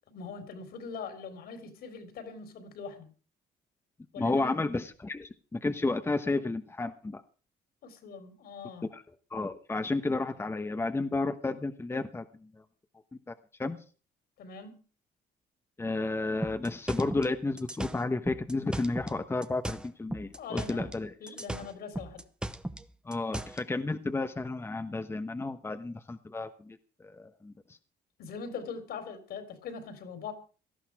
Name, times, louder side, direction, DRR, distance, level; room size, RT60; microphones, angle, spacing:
voice 1, 0.1-3.1 4.1-4.5 7.8-8.9 14.4-14.8 20.3-20.9 21.2-22.2 28.2-30.3, left 5 dB, 65° left, 8 dB, 4.1 m, -42 dB
voice 2, 4.2-7.2 8.9-9.0 9.3-12.6 13.3-13.4 13.6-13.8 15.8-21.4 23.0-26.8 27.0-27.8, left 3 dB, 15° left, 8 dB, 1.1 m, -32 dB
sound 1, 16.4-19.2 19.4-21.0 21.3-23.6, right 1 dB, 5° right, 0.9 m, -37 dB
18.0 x 13.0 x 4.8 m, 0.37 s
cardioid pair, 110°, 17 cm